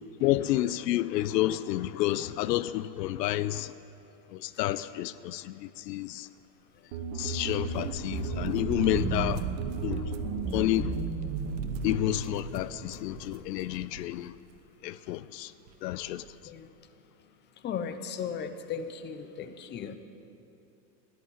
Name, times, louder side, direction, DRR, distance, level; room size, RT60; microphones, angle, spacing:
voice 1, 0.2-3.7 4.3-6.3 7.1-9.5 9.8-10.1 10.5-10.9 11.8-14.3 14.8-15.5 15.8-16.2, left 14 dB, 75° left, 0.6 m, -30 dB
sound 1, 6.9-12.2, right 4 dB, 55° right, 2.4 m, -34 dB
sound 2, 7.4-14.1 14.5-14.6 15.7-15.8 16.0-16.3, right 9 dB, 75° right, 1.2 m, -39 dB
voice 2, 17.6-20.0, left 7 dB, 20° left, 0.8 m, -36 dB
14.0 x 10.5 x 9.1 m
supercardioid pair, 130°, 50 cm